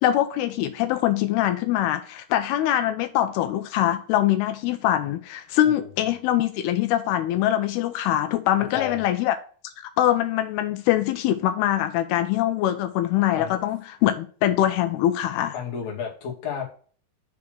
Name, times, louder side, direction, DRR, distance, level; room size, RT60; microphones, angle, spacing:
voice 1, 0.0-9.4 10.0-15.5, left 12 dB, 85° left, 2.6 m, -23 dB
voice 2, 15.5-16.6, left 7 dB, 50° left, 2.6 m, -32 dB
6.5 x 3.5 x 5.9 m
omnidirectional pair, 4.5 m